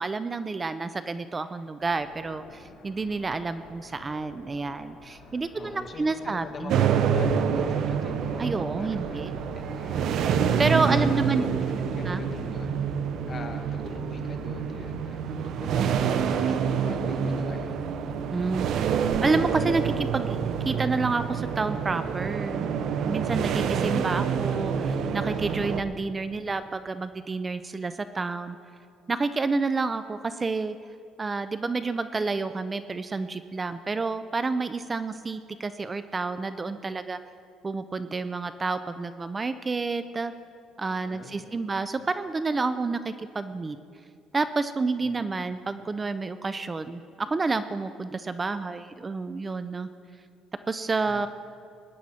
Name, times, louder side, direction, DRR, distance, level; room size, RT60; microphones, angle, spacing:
voice 1, 0.0-6.7 8.4-9.3 10.6-11.4 12.1-12.2 18.3-22.7 23.0-28.6 29.1-30.8 31.2-37.2 37.6-40.3 40.8-43.8 44.3-49.9 50.7-51.3, right 3 dB, 25° right, 12 dB, 0.4 m, -29 dB
sound 1, 1.8-11.7, left 3 dB, 80° left, 3.0 m, -50 dB
voice 2, 5.5-10.6 10.9-12.8 13.3-17.9 40.8-41.8 45.0-45.2 51.1-51.3, left 4 dB, 35° left, 5 dB, 1.5 m, -43 dB
sound 2, 6.7-25.8, right 7 dB, 65° right, 0.8 m, -27 dB
20.5 x 10.0 x 4.2 m, 2.4 s
cardioid pair, 110°, 0 cm